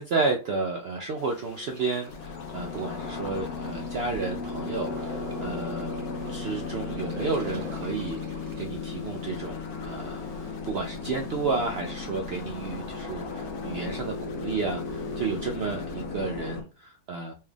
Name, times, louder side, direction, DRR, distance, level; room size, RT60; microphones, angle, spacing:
voice 1, 0.0-5.9 6.3-17.3, right 4 dB, 85° right, 3 dB, 0.5 m, -32 dB
sound 1, 1.1-16.0, left 4 dB, 55° left, 0.6 m, -49 dB
sound 2, 1.7-8.7, right 1 dB, 35° right, 0.8 m, -46 dB
sound 3, 2.1-16.6, left 4 dB, 75° left, 1.3 m, -35 dB
4.4 x 2.4 x 3.3 m, 0.33 s
omnidirectional pair, 1.6 m